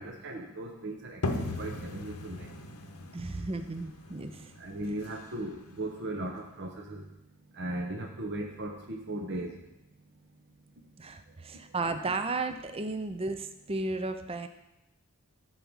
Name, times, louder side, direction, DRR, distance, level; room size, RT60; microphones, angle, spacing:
voice 1, 0.0-2.6 4.5-7.1 7.5-9.7, right 1 dB, 55° right, 1 dB, 1.0 m, -37 dB
sound 1, 1.2-6.7, left 2 dB, 80° left, 0.9 m, -39 dB
voice 2, 3.1-4.5 11.0-14.5, right 3 dB, 25° right, 9 dB, 0.5 m, -34 dB
13.5 x 4.7 x 5.6 m, 0.92 s
head